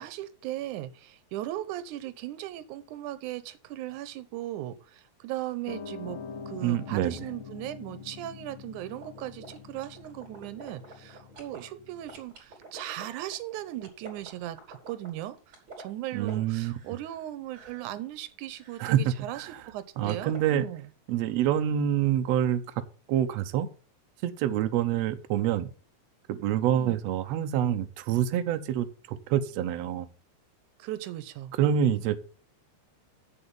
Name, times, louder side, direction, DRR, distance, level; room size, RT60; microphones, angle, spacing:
voice 1, 0.0-6.2 6.5-20.9 26.7-27.0 30.8-31.5, right 14 dB, 90° right, 14 dB, 2.2 m, -38 dB
Piano, 5.7-12.2, left 6 dB, 70° left, 2.4 m, -44 dB
voice 2, 6.6-7.1 16.1-16.7 18.8-19.0 19.4-19.5 20.0-20.7 21.1-22.8 23.1-23.7 24.2-25.7 26.3-30.1 31.6-32.2, right 10 dB, 70° right, 9 dB, 1.8 m, -26 dB
sound 1, 9.0-11.6 12.1-17.2 17.5-17.9 18.5-19.1 20.0-20.5, right 3 dB, 40° right, 3.9 m, -48 dB
7.7 x 7.1 x 7.0 m, 0.39 s
omnidirectional pair, 3.4 m